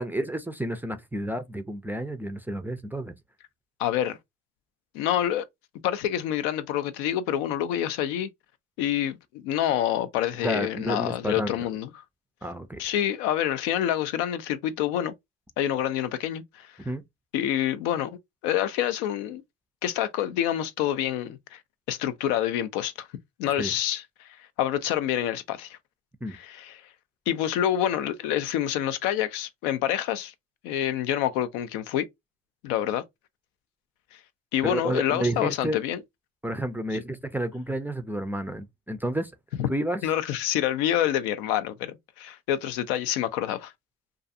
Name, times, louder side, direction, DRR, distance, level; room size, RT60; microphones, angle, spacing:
voice 1, 0.0-3.1 10.4-11.7 12.4-12.8 16.8-17.0 23.6-23.7 26.2-26.4 34.6-35.8 36.4-39.3 39.7-40.0, right 1 dB, 5° right, 0.3 m, -30 dB
voice 2, 3.8-4.2 4.9-5.4 5.8-8.3 8.8-11.9 12.8-15.1 15.6-16.8 17.3-19.4 19.8-21.6 21.9-23.1 23.4-24.3 24.6-25.8 26.3-26.7 27.3-30.3 30.6-32.1 32.6-33.0 34.1-34.2 34.5-36.0 39.6-39.7 40.0-43.7, left 11 dB, 85° left, 0.5 m, -27 dB
2.4 x 2.3 x 2.6 m
supercardioid pair, 75°, 33 cm